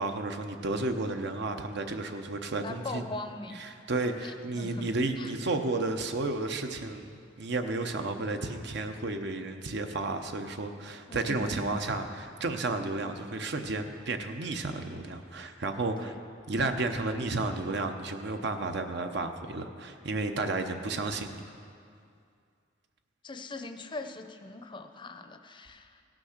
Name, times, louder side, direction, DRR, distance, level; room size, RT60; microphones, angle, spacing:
voice 1, 0.0-3.0 3.6-16.1 16.5-21.4, right 2 dB, 60° right, 6 dB, 0.8 m, -32 dB
voice 2, 2.6-3.7 4.2-4.9 5.2-5.3 11.1-11.8 16.0-16.2 23.2-26.0, left 2 dB, 25° left, 7 dB, 0.6 m, -41 dB
16.5 x 6.2 x 6.5 m, 2.4 s
head